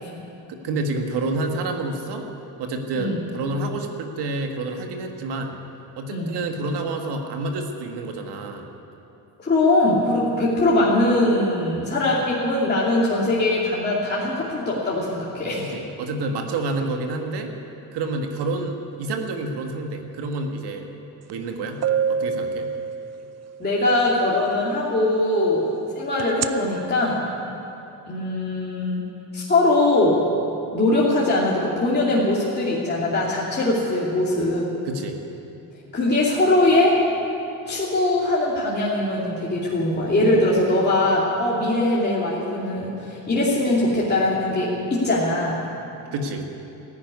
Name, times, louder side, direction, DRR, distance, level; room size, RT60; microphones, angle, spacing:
voice 1, 0.5-2.3 2.6-5.6 6.0-8.7 15.6-17.5 17.9-20.9 21.3-22.7 34.9-35.2 46.1-46.5, right 2 dB, 75° right, 4 dB, 1.9 m, -28 dB
voice 2, 9.4-15.6 23.6-27.2 28.1-29.0 29.3-30.2 30.7-34.7 35.9-37.0 37.7-45.6, left 2 dB, 25° left, -6 dB, 2.7 m, -21 dB
sound 1, 21.3-21.4 21.8-23.6 26.2-26.5, right 7 dB, 40° right, 0.6 m, -25 dB
14.0 x 10.5 x 9.6 m, 2.9 s
cardioid pair, 100°, 41 cm